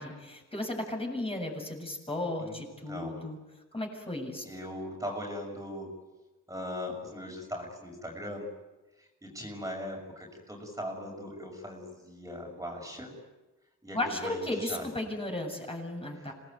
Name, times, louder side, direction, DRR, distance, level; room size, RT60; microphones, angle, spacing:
voice 1, 0.0-3.4 3.7-4.4 13.9-16.3, left 1 dB, 15° left, 1 dB, 7.9 m, -35 dB
voice 2, 2.9-3.3 4.4-5.9 6.5-8.5 9.0-13.1 13.8-14.9 16.1-16.3, equal, 10° right, 0 dB, 6.4 m, -39 dB
27.5 x 19.0 x 9.3 m, 1.1 s
cardioid pair, 95°, 32 cm